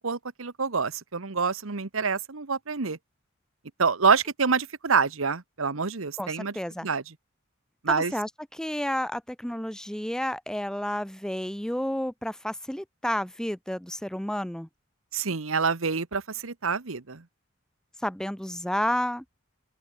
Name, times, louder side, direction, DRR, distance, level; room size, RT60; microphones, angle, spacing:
voice 1, 0.0-3.0 3.8-6.5 6.8-7.0 7.8-8.1 15.1-17.2, right 5 dB, 85° right, 1.2 m, -26 dB
voice 2, 6.2-6.9 7.9-14.7 18.0-19.2, equal, 5° left, 0.7 m, -31 dB
open air
head